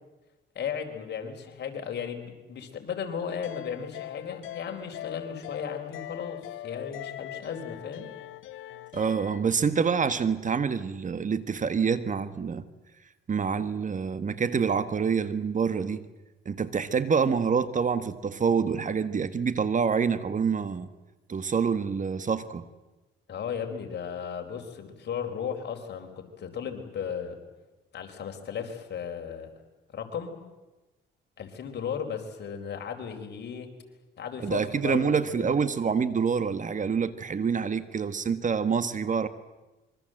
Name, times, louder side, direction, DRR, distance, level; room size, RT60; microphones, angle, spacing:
voice 1, 0.5-8.1 23.3-27.4 27.9-29.5 29.9-30.3 31.4-33.7 34.2-35.6, left 7 dB, 60° left, 4 dB, 4.3 m, -35 dB
sound 1, 3.3-9.4, left 13 dB, 90° left, 1.1 m, -41 dB
voice 2, 8.9-12.7 13.3-16.0 16.4-20.9 21.3-22.6 34.4-39.3, right 6 dB, 40° right, 13 dB, 1.5 m, -26 dB
26.0 x 23.5 x 7.8 m, 1.1 s
cardioid pair, 90°, 20 cm